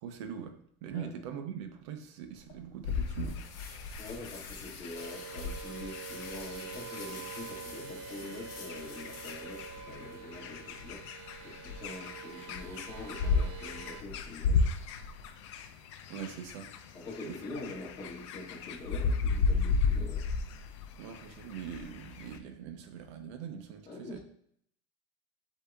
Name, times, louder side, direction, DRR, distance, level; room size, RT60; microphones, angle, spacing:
voice 1, 0.0-3.9 16.1-17.0 17.2-17.6 21.0-24.2, right 8 dB, 75° right, 7 dB, 0.7 m, -43 dB
sound 1, 2.3-10.2, left 4 dB, 65° left, 1.2 m, -49 dB
sound 2, 2.8-22.4, left 4 dB, 85° left, 0.5 m, -35 dB
voice 2, 4.0-14.8 16.9-20.3 23.9-24.2, left 2 dB, 35° left, -4 dB, 1.9 m, -45 dB
sound 3, 4.9-14.0, right 9 dB, 40° right, 0.4 m, -46 dB
8.0 x 2.8 x 2.3 m, 0.67 s
supercardioid pair, 155°, 15 cm